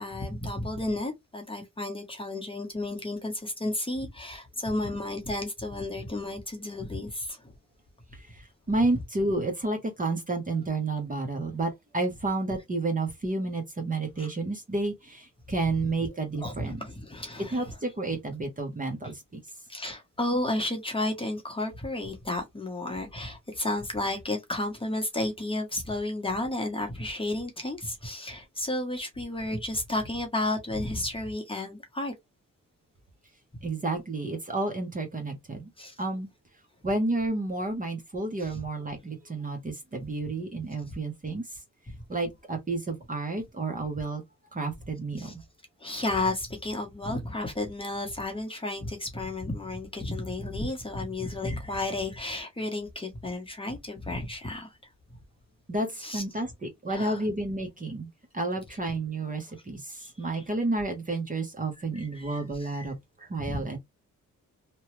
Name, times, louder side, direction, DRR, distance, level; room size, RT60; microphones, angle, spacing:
voice 1, 0.0-7.5 14.2-14.3 16.0-17.7 19.7-32.1 33.5-33.6 35.8-35.9 38.4-38.6 41.9-42.0 45.2-45.3 45.8-54.8 56.0-56.2 56.9-57.2 60.0-60.1 61.9-62.9 63.4-63.6, left 2 dB, 15° left, 1.0 m, -32 dB
voice 2, 8.1-16.8 17.5-19.4 33.6-35.7 36.0-36.3 36.8-41.6 42.1-44.2 44.5-45.3 55.7-58.1 58.3-63.8, right 2 dB, 25° right, 0.8 m, -31 dB
2.9 x 2.2 x 3.0 m
wide cardioid pair, 130°, 31 cm